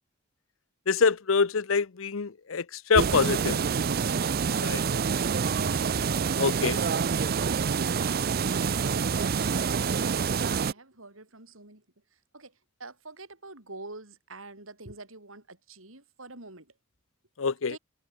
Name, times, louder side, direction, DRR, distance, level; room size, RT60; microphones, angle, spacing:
voice 1, 0.9-2.6 2.9-3.6 4.6-4.8 6.4-6.8 17.4-17.8, left 5 dB, 75° left, 0.7 m, -25 dB
sound 1, 3.0-10.7, right 6 dB, 45° right, 0.5 m, -27 dB
voice 2, 4.3-4.7 7.4-11.8 12.3-12.5 12.8-16.7 17.7-17.8, right 2 dB, 80° right, 6.5 m, -47 dB
head